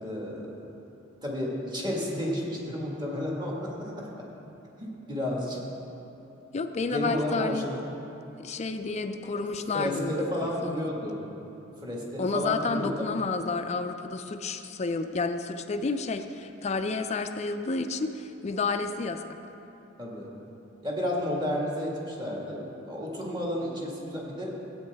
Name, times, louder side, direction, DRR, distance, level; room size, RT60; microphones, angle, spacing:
voice 1, 0.0-0.5 1.2-4.3 4.8-5.6 6.9-7.8 9.7-11.3 11.8-12.9 20.0-20.3 20.8-24.5, left 1 dB, 25° right, -3 dB, 1.8 m, -32 dB
voice 2, 6.5-7.7 8.4-10.9 12.2-19.4, left 3 dB, 35° left, 8 dB, 0.4 m, -30 dB
16.0 x 8.8 x 3.5 m, 2.9 s
head